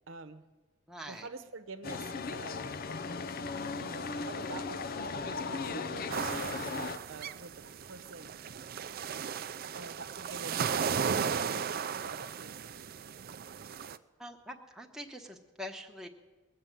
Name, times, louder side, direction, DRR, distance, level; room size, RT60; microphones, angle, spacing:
voice 1, 0.1-0.5 1.1-2.7 3.8-4.8 5.2-8.4 9.7-12.9, right 3 dB, 75° right, 8 dB, 0.9 m, -47 dB
voice 2, 0.9-1.3 14.2-16.1, equal, 5° right, 1 dB, 1.1 m, -44 dB
sound 1, 1.8-7.0, left 4 dB, 45° left, 0.5 m, -37 dB
sound 2, 6.1-14.0, right 6 dB, 50° right, 0.4 m, -36 dB
20.5 x 7.4 x 9.2 m, 1.2 s
head